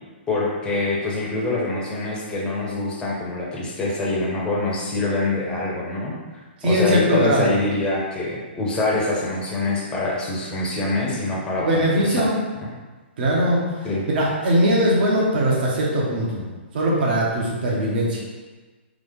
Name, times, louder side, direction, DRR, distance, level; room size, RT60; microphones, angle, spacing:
voice 1, 0.3-6.2 6.6-11.7 12.0-12.3 12.6-12.7 13.8-14.0, left 2 dB, 15° left, -5 dB, 0.8 m, -25 dB
voice 2, 6.6-7.5 11.6-12.4 13.2-16.4 16.7-18.2, equal, 55° right, -4 dB, 1.1 m, -20 dB
3.7 x 2.4 x 3.5 m, 1.3 s
hypercardioid pair, 145°, 6 cm